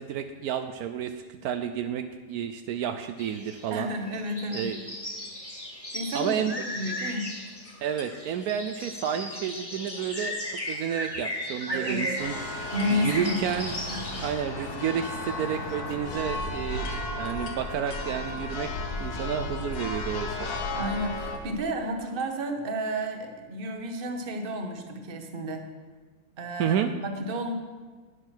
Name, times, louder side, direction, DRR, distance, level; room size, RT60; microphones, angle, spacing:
voice 1, 0.0-3.9 4.5-4.8 6.1-6.6 7.8-12.4 12.9-13.7 14.2-16.9 17.2-18.7 19.0-20.5 26.6-26.9, right 8 dB, 75° right, 8 dB, 1.0 m, -31 dB
sound 1, 3.2-14.3, left 1 dB, 20° left, 1.8 m, -36 dB
voice 2, 3.7-4.7 5.9-7.3 11.7-12.2 12.7-13.6 13.9-14.1 20.7-25.6 26.4-26.8 27.0-27.5, equal, 40° right, 5 dB, 1.1 m, -31 dB
sound 2, 7.5-22.9, left 3 dB, 55° left, 1.8 m, -54 dB
Church bell, 12.2-21.4, left 2 dB, 75° left, 1.6 m, -34 dB
11.5 x 9.5 x 4.5 m, 1.4 s
omnidirectional pair, 1.6 m